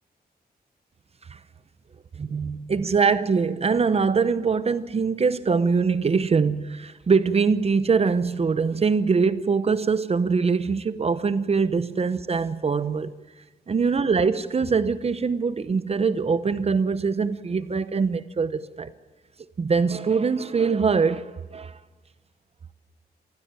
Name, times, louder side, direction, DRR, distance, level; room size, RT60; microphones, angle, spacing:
voice 1, 2.1-13.1 13.7-18.9 19.6-21.8, right 5 dB, 40° right, 0.8 m, -23 dB
27.0 x 15.5 x 9.0 m
wide cardioid pair, 120°, 17 cm